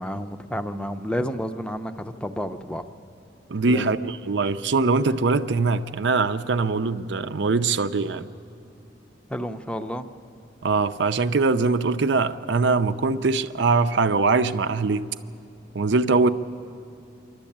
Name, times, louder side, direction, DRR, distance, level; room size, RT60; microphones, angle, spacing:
voice 1, 0.0-2.9 3.7-3.9 9.3-10.1, equal, 5° left, 0.6 m, -30 dB
voice 2, 3.5-8.3 10.6-15.1 15.7-16.3, right 4 dB, 70° right, 0.6 m, -22 dB
26.0 x 12.0 x 8.6 m
head